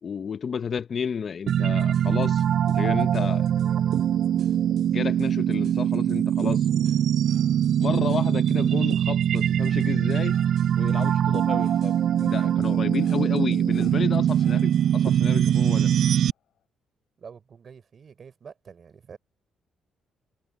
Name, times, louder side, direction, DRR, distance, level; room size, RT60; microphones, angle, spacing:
voice 1, 0.0-3.5 4.9-6.7 7.8-10.4 10.8-15.9, left 6 dB, 50° left, 1.0 m, -32 dB
sound 1, 1.5-16.3, right 10 dB, 70° right, 0.3 m, -22 dB
sound 2, 6.9-16.6, left 10 dB, 70° left, 6.6 m, -59 dB
voice 2, 17.2-19.2, right 6 dB, 50° right, 4.1 m, -46 dB
cardioid pair, 90°, 0 cm